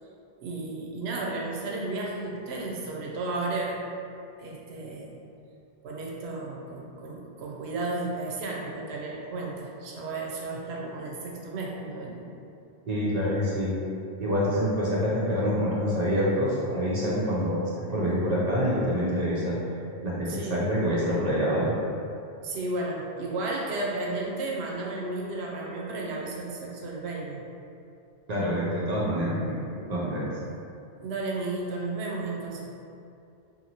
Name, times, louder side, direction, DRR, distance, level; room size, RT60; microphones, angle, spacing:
voice 1, 0.4-3.9 4.4-5.2 5.8-12.3 20.3-20.6 22.4-27.5 31.0-32.7, right 2 dB, 85° right, -2 dB, 0.8 m, -33 dB
voice 2, 12.8-13.8 14.2-17.6 17.9-19.6 20.0-21.7 28.3-29.6 29.9-30.3, equal, 50° right, -7 dB, 0.5 m, -26 dB
2.9 x 2.6 x 2.7 m, 2.5 s
omnidirectional pair, 1.1 m